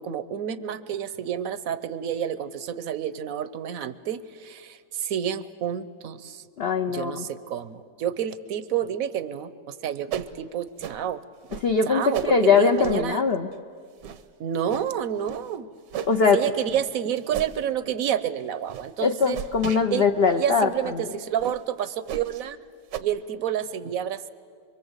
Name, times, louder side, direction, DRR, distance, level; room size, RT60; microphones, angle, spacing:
voice 1, 0.0-6.4 6.9-11.2 11.9-13.2 14.4-15.7 16.3-19.4 19.9-20.0 20.4-22.6 23.0-24.3, right 9 dB, 60° right, 14 dB, 1.1 m, -29 dB
voice 2, 6.6-7.3 11.6-13.5 16.1-16.4 19.0-21.1, left 5 dB, 50° left, 5 dB, 0.7 m, -21 dB
Swoops for fight etc, 10.1-10.3 10.8-11.0 11.5-11.7 12.1-12.3 12.8-13.0 13.5-13.6 14.0-14.2 14.7-14.9 15.2-15.5 15.9-16.2 16.7-16.9 17.3-17.6 18.0-18.2 18.7-18.9 19.3-19.8 20.3-20.4 20.8-20.9 21.4-21.6 22.1-22.4 22.9-23.0, right 10 dB, 80° right, 1.5 m, -35 dB
25.0 x 23.5 x 8.1 m, 2.1 s
omnidirectional pair, 1.9 m